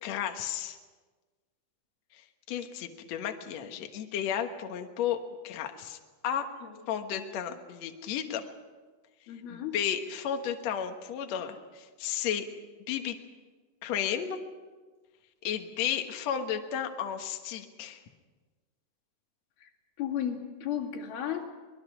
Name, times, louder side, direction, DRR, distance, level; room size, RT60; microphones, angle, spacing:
voice 1, 0.0-0.8 2.1-2.2 2.5-5.2 5.4-6.0 6.2-6.5 6.9-8.4 9.5-12.4 12.9-13.1 13.8-14.4 15.4-18.0, left 9 dB, 60° left, 5 dB, 2.1 m, -33 dB
voice 2, 9.3-9.7 19.6-19.7 20.0-21.4, left 9 dB, 85° left, -1 dB, 4.3 m, -34 dB
25.0 x 20.5 x 6.1 m, 1.3 s
omnidirectional pair, 4.3 m